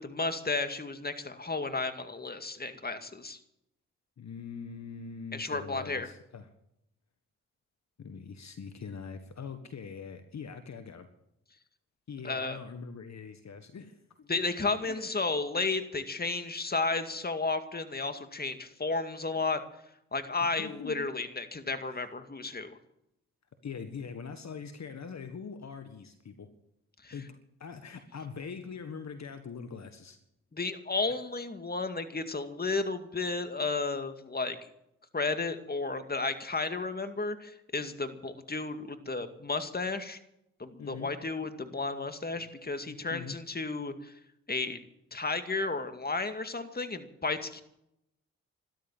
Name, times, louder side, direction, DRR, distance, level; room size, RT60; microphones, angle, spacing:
voice 1, 0.0-3.4 5.3-6.1 12.2-12.6 14.3-19.6 20.1-22.8 27.0-27.1 30.5-34.6 35.1-40.2 40.6-44.1 44.5-44.8 45.1-47.6, left 3 dB, 30° left, 8 dB, 2.2 m, -33 dB
voice 2, 4.2-6.5 8.0-11.1 12.1-14.3 14.8-15.1 20.4-21.0 21.9-22.0 23.6-26.5 27.1-27.3 27.6-30.2 40.8-41.1 42.8-43.4, left 6 dB, 55° left, 8 dB, 1.7 m, -42 dB
14.0 x 13.0 x 7.4 m, 0.79 s
hypercardioid pair, 45°, 34 cm